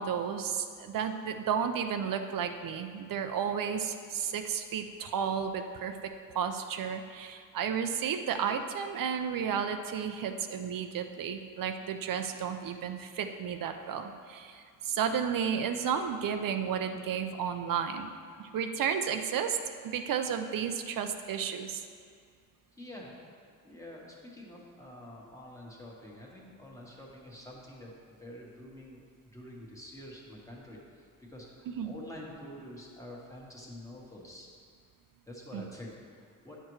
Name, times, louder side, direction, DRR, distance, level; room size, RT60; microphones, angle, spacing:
voice 1, 0.0-18.1 18.4-21.8 31.7-31.9 35.5-35.7, right 7 dB, 80° right, 7 dB, 0.5 m, -33 dB
voice 2, 22.7-23.4 23.6-34.5 35.3-36.6, left 1 dB, 10° left, -3 dB, 1.2 m, -47 dB
10.0 x 6.6 x 3.1 m, 2.1 s
wide cardioid pair, 145°, 33 cm